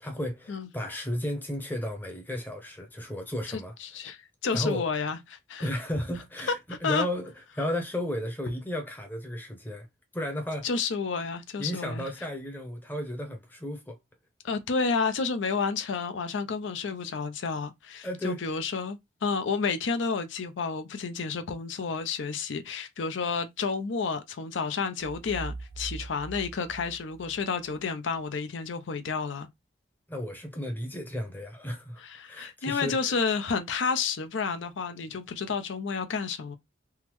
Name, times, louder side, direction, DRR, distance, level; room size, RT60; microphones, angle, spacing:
voice 1, 0.0-3.7 4.5-4.8 5.6-9.9 10.1-10.7 11.6-14.0 18.0-18.4 30.1-32.0 32.3-33.2, equal, 10° left, 0.7 m, -34 dB
voice 2, 3.5-5.7 6.7-7.1 10.6-12.1 14.4-29.5 32.0-36.6, left 5 dB, 80° left, 0.5 m, -30 dB
sound 1, 25.0-27.8, right 3 dB, 60° right, 0.5 m, -41 dB
3.5 x 2.0 x 3.0 m
head